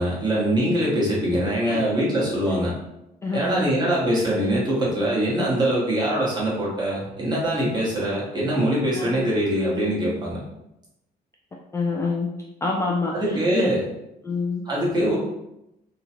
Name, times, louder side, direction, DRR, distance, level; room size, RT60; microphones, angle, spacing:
voice 1, 0.0-2.7 3.3-10.4 13.1-13.8 14.6-15.2, right 1 dB, 25° right, -6 dB, 1.2 m, -23 dB
voice 2, 3.2-3.7 8.9-9.2 11.7-12.3 12.6-13.7 14.2-14.7, left 3 dB, 15° left, -2 dB, 0.3 m, -26 dB
2.9 x 2.3 x 2.8 m, 0.87 s
cardioid pair, 110°, 17 cm